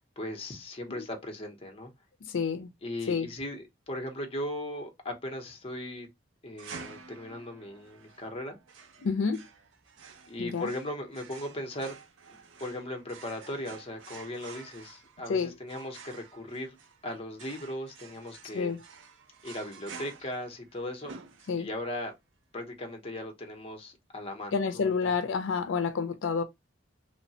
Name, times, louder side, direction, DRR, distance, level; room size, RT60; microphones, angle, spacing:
voice 1, 0.2-1.9 2.8-6.1 6.4-8.6 10.3-12.0 12.3-16.8 17.0-18.8 19.4-21.1 21.6-22.1 22.5-25.1, left 1 dB, 30° left, 0.7 m, -38 dB
voice 2, 2.2-2.7 3.1-3.3 9.0-9.5 10.4-10.7 15.3-15.5 18.5-18.8 21.5-21.7 24.5-26.4, left 5 dB, 85° left, 0.4 m, -29 dB
sound 1, 6.6-21.9, right 5 dB, 80° right, 0.5 m, -50 dB
3.1 x 2.1 x 2.7 m
head